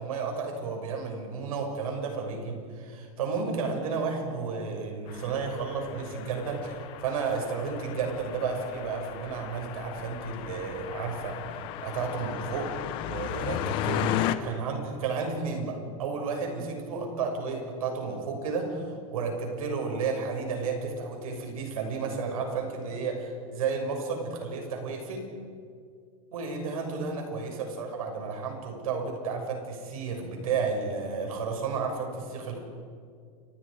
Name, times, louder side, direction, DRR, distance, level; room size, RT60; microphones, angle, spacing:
voice 1, 0.0-12.7 13.1-25.3 26.3-32.6, right 4 dB, 85° right, 2 dB, 6.7 m, -32 dB
sound 1, 5.1-14.4, left 11 dB, 30° left, 1.0 m, -35 dB
29.5 x 27.0 x 5.1 m, 2.3 s
supercardioid pair, 180°, 18 cm